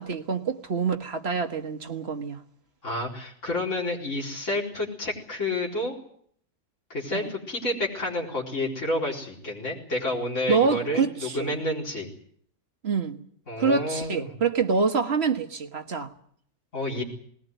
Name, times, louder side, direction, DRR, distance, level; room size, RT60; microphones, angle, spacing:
voice 1, 0.0-2.4 7.1-7.3 10.5-11.5 12.8-13.2 13.6-16.1, right 5 dB, 45° right, 1.6 m, -26 dB
voice 2, 2.8-6.0 6.9-12.1 13.5-14.3 16.7-17.0, left 1 dB, 50° left, 4.7 m, -29 dB
20.0 x 18.0 x 9.2 m
omnidirectional pair, 1.6 m